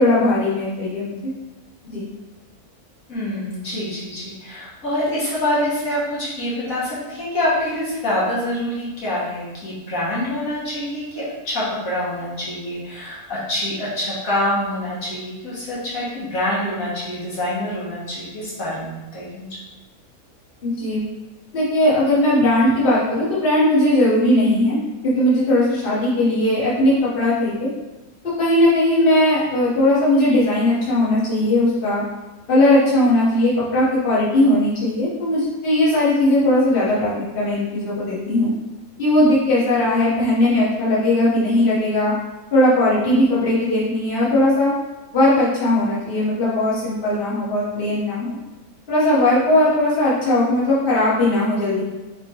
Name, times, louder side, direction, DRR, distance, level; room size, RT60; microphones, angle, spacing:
voice 1, 0.0-1.3 1.8-2.0 20.6-21.0 21.5-24.8 25.1-27.7 28.4-32.0 32.5-38.5 39.0-42.1 42.5-44.7 45.1-48.4 48.9-51.8, left 1 dB, 40° left, -8 dB, 1.3 m, -18 dB
voice 2, 3.1-19.5, left 1 dB, 70° left, -8 dB, 1.6 m, -26 dB
3.7 x 3.5 x 3.0 m, 1.1 s
omnidirectional pair, 1.5 m